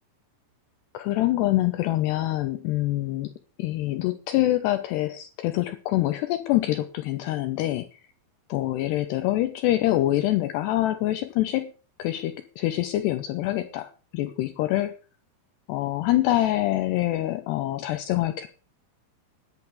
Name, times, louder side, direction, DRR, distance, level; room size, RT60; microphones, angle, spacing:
voice 1, 0.9-3.3 3.6-8.0 8.5-11.7 12.0-14.9 15.7-18.5, left 15 dB, 80° left, 9 dB, 2.7 m, -25 dB
11.0 x 9.8 x 8.5 m, 0.38 s
omnidirectional pair, 5.4 m